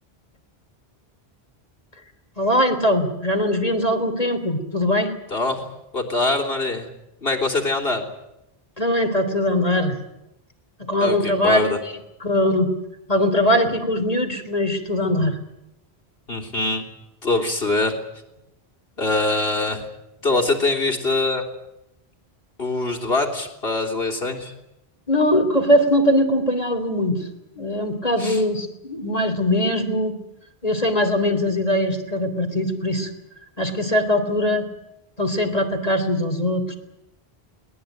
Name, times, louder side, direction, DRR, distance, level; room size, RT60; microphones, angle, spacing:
voice 1, 2.4-5.1 8.8-9.9 10.9-11.7 12.2-12.7 13.1-15.4 25.1-27.3 27.5-30.1 30.6-33.1 33.6-34.7 35.2-36.7, left 1 dB, 40° left, 5 dB, 3.4 m, -21 dB
voice 2, 5.3-5.6 5.9-6.9 7.2-8.1 11.0-11.8 16.3-16.8 17.2-18.0 19.0-19.9 20.2-21.4 22.6-24.5 28.2-28.4, left 2 dB, 70° left, 0 dB, 3.7 m, -23 dB
22.5 x 19.5 x 9.3 m, 0.88 s
omnidirectional pair, 1.0 m